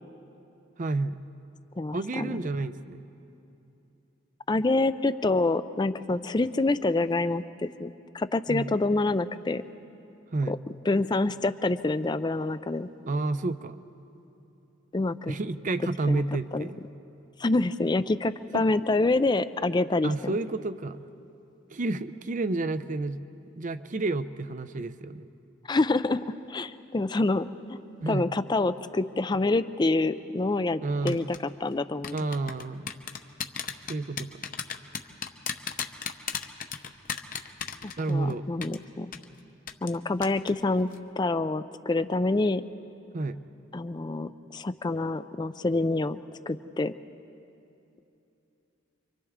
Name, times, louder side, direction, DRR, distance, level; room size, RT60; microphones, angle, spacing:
voice 1, 0.8-1.2 1.9-3.0 8.5-8.7 10.3-10.5 13.1-13.8 15.3-16.8 18.5-18.6 20.0-21.0 21.7-23.2 23.6-25.3 28.0-28.3 30.8-31.2 32.1-32.9 33.9-34.4 38.0-38.5 43.1-43.4, right 2 dB, 40° right, 12 dB, 0.5 m, -30 dB
voice 2, 1.8-2.4 4.5-9.6 10.5-10.6 10.9-12.9 14.9-15.4 16.1-16.2 16.5-16.7 17.4-20.4 25.7-27.8 28.1-32.2 37.8-39.1 39.8-40.9 41.2-42.6 43.7-46.2 46.5-46.9, left 2 dB, 20° left, 13 dB, 0.4 m, -27 dB
sound 1, 31.1-31.4 32.0-38.3 38.6-38.8 39.1-39.2 39.7-40.0 40.2-40.5 40.8-41.0, left 7 dB, 45° left, 0.8 m, -33 dB
29.5 x 24.5 x 3.6 m, 2.9 s
head